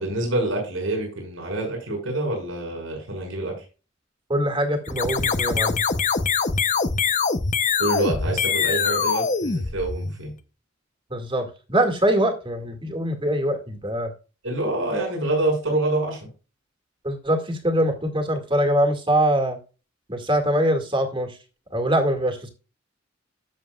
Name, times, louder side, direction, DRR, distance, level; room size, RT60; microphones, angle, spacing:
voice 1, 0.0-3.6 7.8-10.3 14.4-16.3, right 2 dB, 90° right, 0 dB, 5.9 m, -26 dB
voice 2, 4.3-5.8 11.1-14.1 17.0-19.6 20.1-21.4 21.7-22.5, right 1 dB, 25° right, 5 dB, 2.0 m, -23 dB
sound 1, 4.9-10.3, left 5 dB, 40° left, 0.7 m, -23 dB
12.5 x 7.4 x 2.4 m, 0.32 s
head